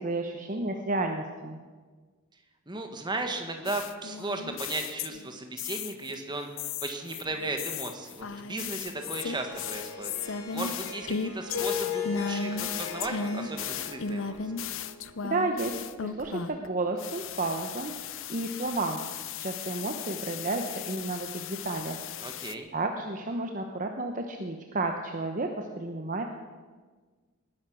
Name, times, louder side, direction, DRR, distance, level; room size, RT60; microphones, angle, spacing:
voice 1, 0.0-1.6 15.2-15.7 16.0-19.0 19.4-22.0 22.7-26.2, right 2 dB, 35° right, 4 dB, 1.0 m, -32 dB
voice 2, 2.7-14.5 22.2-22.7, right 2 dB, 20° right, 5 dB, 1.6 m, -36 dB
sound 1, 3.7-6.1 6.6-16.7 17.0-22.5, left 6 dB, 60° left, 0.6 m, -36 dB
Harp, 8.9-15.3, left 6 dB, 75° left, 3.8 m, -38 dB
19.0 x 10.5 x 6.3 m, 1.4 s
head